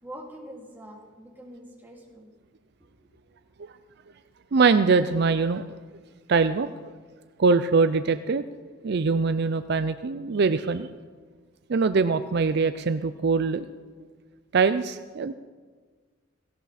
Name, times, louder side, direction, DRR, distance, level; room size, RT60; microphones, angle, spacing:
voice 1, 0.0-2.3 3.0-3.1, equal, 10° right, -2 dB, 2.7 m, -44 dB
voice 2, 4.5-5.6 6.3-6.7 7.4-8.4 8.8-10.9 11.7-13.7 14.5-15.3, right 4 dB, 60° right, 11 dB, 0.5 m, -22 dB
17.5 x 17.0 x 4.2 m, 1.5 s
head